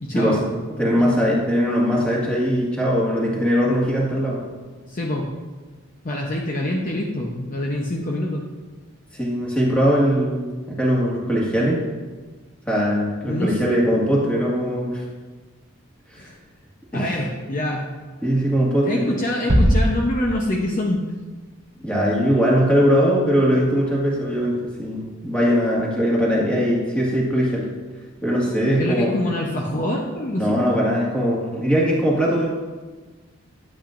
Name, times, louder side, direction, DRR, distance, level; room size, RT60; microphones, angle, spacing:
voice 1, 0.0-0.6 4.9-5.3 6.0-8.4 13.3-13.6 16.2-16.3 16.9-17.9 18.9-21.1 28.7-30.6, left 1 dB, 40° left, -1 dB, 0.7 m, -25 dB
voice 2, 0.7-4.4 9.1-11.8 12.7-15.0 16.1-16.2 16.9-17.2 18.2-19.1 21.8-27.7 28.2-29.1 30.4-32.5, equal, 5° left, -5 dB, 1.8 m, -20 dB
sound 1, 19.5-20.9, equal, 30° right, 0.8 m, -20 dB
9.9 x 8.7 x 2.5 m, 1.3 s
head